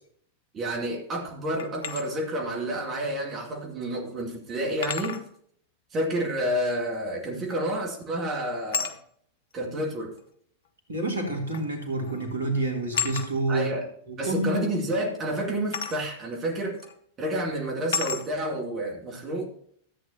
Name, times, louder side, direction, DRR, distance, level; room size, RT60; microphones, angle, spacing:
voice 1, 0.5-5.2 5.9-8.9 9.5-10.1 13.5-13.9 14.2-16.8 17.2-19.5, right 1 dB, 25° right, 0 dB, 2.0 m, -29 dB
sound 1, 1.6-2.1 3.6-3.7 4.8-5.3 7.5-7.8 8.7-9.0 10.2-10.3 11.5-11.8 12.0-12.3 12.9-13.3 15.7-16.0 16.8-16.9 17.9-18.3, left 6 dB, 60° left, 0.9 m, -31 dB
voice 2, 10.9-13.7 14.1-14.7, right 2 dB, 70° right, 2 dB, 2.6 m, -28 dB
14.0 x 8.6 x 2.8 m, 0.63 s
figure-of-eight pair, 90°, 0 cm